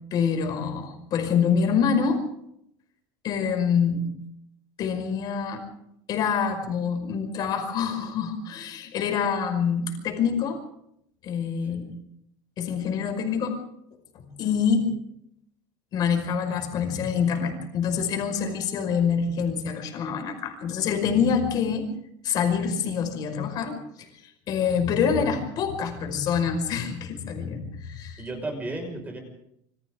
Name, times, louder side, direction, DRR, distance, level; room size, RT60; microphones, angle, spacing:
voice 1, 0.1-2.2 3.2-4.1 4.8-5.7 6.1-10.6 11.2-11.8 12.6-13.6 14.1-14.9 15.9-21.9 22.2-24.1 24.5-28.2, left 6 dB, 35° left, 5 dB, 5.4 m, -26 dB
voice 2, 28.2-29.2, right 2 dB, 15° right, 4 dB, 5.6 m, -34 dB
28.0 x 24.5 x 3.8 m, 0.75 s
cardioid pair, 175°, 12 cm